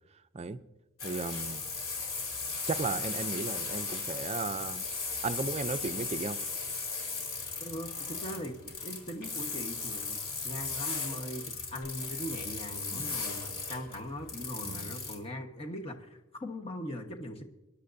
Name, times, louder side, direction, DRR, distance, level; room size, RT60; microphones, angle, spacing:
sound 1, 1.0-15.2, left 4 dB, 70° left, 3.1 m, -37 dB
voice 1, 1.0-1.6 2.7-4.9 5.2-6.4 12.9-13.2 14.6-14.9, right 4 dB, 30° right, 11 dB, 0.5 m, -35 dB
voice 2, 7.6-17.4, equal, 25° left, 3 dB, 1.3 m, -40 dB
24.0 x 11.0 x 2.7 m, 0.97 s
head